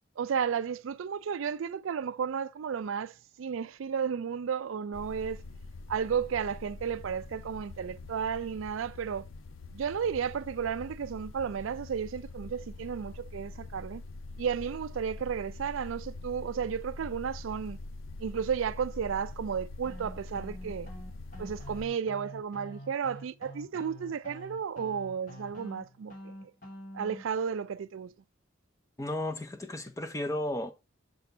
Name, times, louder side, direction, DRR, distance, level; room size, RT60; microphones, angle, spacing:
voice 1, 0.2-5.4 5.9-9.2 9.7-14.0 14.4-17.8 18.2-20.9 21.4-26.3 26.9-28.1, right 7 dB, 75° right, 0.4 m, -33 dB
sound 1, 4.9-21.9, left 2 dB, 80° left, 0.6 m, -44 dB
sound 2, 19.8-27.2, equal, 40° left, 2.1 m, -47 dB
voice 2, 29.0-30.7, left 1 dB, 15° left, 0.6 m, -34 dB
6.8 x 6.0 x 3.2 m
head